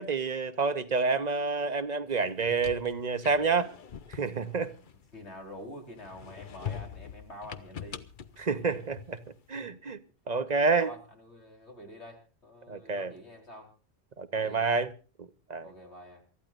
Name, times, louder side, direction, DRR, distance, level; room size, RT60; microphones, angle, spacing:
voice 1, 0.0-3.7 4.1-4.7 8.4-9.2 9.5-10.0 10.3-10.9 12.7-13.1 14.2-14.9 15.2-15.7, right 4 dB, 40° right, 1.0 m, -28 dB
sound 1, 2.2-5.5 6.0-9.4, left 8 dB, 50° left, 0.9 m, -43 dB
voice 2, 5.1-8.0 8.6-8.8 10.8-13.7 14.3-14.8 15.6-16.2, left 1 dB, 80° left, 4.6 m, -47 dB
28.0 x 13.5 x 2.5 m
omnidirectional pair, 1.1 m